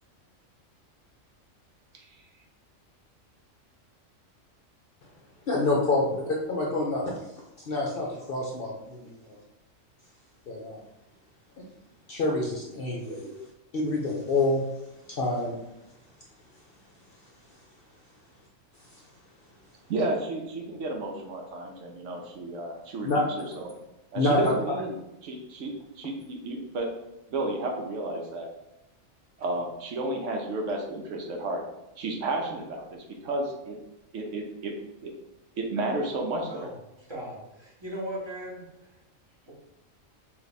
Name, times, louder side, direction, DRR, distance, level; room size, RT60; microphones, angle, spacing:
voice 1, 5.5-7.1 7.6-9.2 10.5-10.8 11.6-11.7 12.1-13.2 13.7-14.6 15.1-15.5 23.0-23.2 24.1-24.5, left 2 dB, 55° left, -2 dB, 0.6 m, -27 dB
voice 2, 19.9-23.7 24.1-24.9 25.2-26.9 27.3-28.5 29.4-31.6 32.0-33.8 34.1-34.7 35.0-35.1 35.6-36.7, right 2 dB, 70° right, 2 dB, 1.0 m, -32 dB
voice 3, 36.4-36.7 37.1-38.6 39.5-39.6, equal, 25° right, -5 dB, 0.9 m, -37 dB
3.3 x 2.6 x 4.0 m, 0.92 s
omnidirectional pair, 1.4 m